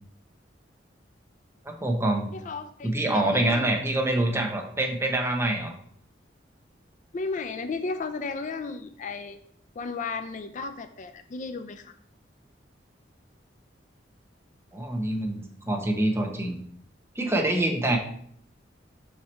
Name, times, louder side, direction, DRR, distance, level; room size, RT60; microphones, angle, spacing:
voice 1, 1.6-2.3 2.8-5.7 14.7-16.6 17.1-18.0, right 1 dB, 15° right, 2 dB, 1.0 m, -26 dB
voice 2, 2.3-3.7 7.1-9.4 9.8-11.9, left 4 dB, 45° left, 9 dB, 0.4 m, -34 dB
5.7 x 4.6 x 4.3 m, 0.64 s
head